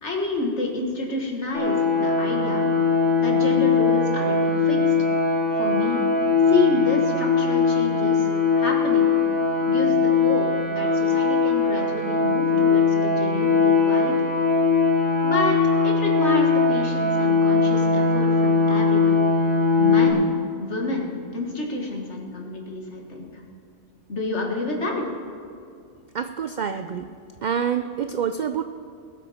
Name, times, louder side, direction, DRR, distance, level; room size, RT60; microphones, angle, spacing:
voice 1, 0.0-2.7 3.2-5.1 5.5-6.0 6.4-8.3 8.6-9.1 9.7-14.3 15.2-19.2 19.8-20.3 20.6-23.4 24.1-25.1, left 2 dB, 65° left, 0 dB, 2.1 m, -29 dB
sound 1, 1.5-20.1, left 4 dB, 45° left, 1.8 m, -20 dB
voice 2, 26.1-27.1 27.4-28.6, right 7 dB, 60° right, 8 dB, 0.5 m, -27 dB
20.0 x 8.3 x 4.3 m, 2.4 s
omnidirectional pair, 1.3 m